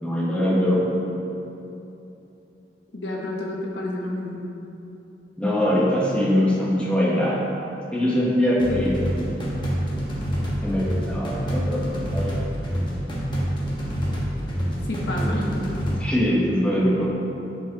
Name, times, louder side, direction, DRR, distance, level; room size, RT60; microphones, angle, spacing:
voice 1, 0.0-0.8 5.4-7.4 7.9-9.2 10.6-12.4 15.3-15.7 16.0-17.1, equal, 5° left, -6 dB, 1.1 m, -22 dB
voice 2, 2.9-4.4 14.9-15.5, left 1 dB, 85° left, -2 dB, 1.0 m, -30 dB
sound 1, 8.6-16.0, equal, 25° left, 1.1 m, -27 dB
10.5 x 4.6 x 2.9 m, 2.9 s
head